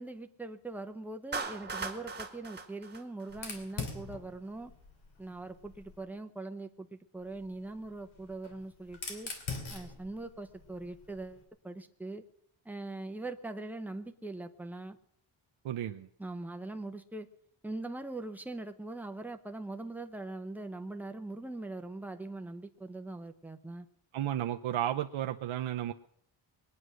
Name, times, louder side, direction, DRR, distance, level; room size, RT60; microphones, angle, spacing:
voice 1, 0.0-4.7 5.2-9.3 9.7-12.2 12.6-15.0 16.2-17.3 17.6-23.9, right 2 dB, 5° right, 7 dB, 0.7 m, -42 dB
Clapping, 1.3-3.7, right 4 dB, 20° right, 1.4 m, -39 dB
Fire, 3.3-6.1 7.2-11.4, left 4 dB, 70° left, 3.0 m, -44 dB
voice 2, 15.6-16.1 24.1-25.9, right 11 dB, 75° right, 4 dB, 0.8 m, -33 dB
21.5 x 9.7 x 6.3 m, 0.68 s
wide cardioid pair, 180°, 48 cm